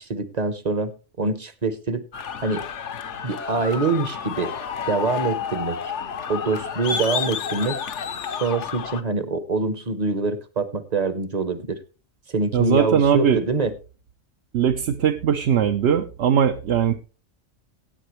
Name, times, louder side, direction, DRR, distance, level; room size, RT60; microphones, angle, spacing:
voice 1, 0.0-2.0 2.4-2.6 3.2-4.5 4.9-5.9 6.3-7.8 8.3-11.8 12.3-13.7, right 3 dB, 35° right, 13 dB, 0.9 m, -25 dB
sound 1, 2.1-9.0, left 7 dB, 65° left, 1.2 m, -30 dB
voice 2, 12.5-13.4 14.5-17.0, right 8 dB, 60° right, 6 dB, 0.9 m, -20 dB
16.5 x 8.8 x 3.1 m, 0.32 s
omnidirectional pair, 1.4 m